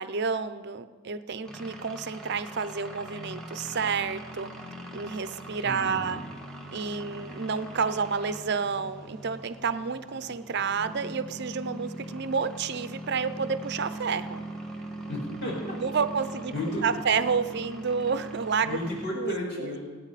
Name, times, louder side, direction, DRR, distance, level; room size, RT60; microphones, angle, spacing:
voice 1, 0.0-4.5 4.9-6.2 6.7-14.4 15.8-16.5 16.8-18.8 19.1-19.3, right 5 dB, 55° right, 12 dB, 0.7 m, -30 dB
sound 1, 1.5-19.1, right 1 dB, 5° left, 1.5 m, -41 dB
voice 2, 5.6-6.2 15.1-15.8 16.5-16.8 18.6-19.8, left 1 dB, 55° left, -4 dB, 5.0 m, -33 dB
27.0 x 9.2 x 4.1 m, 1.6 s
head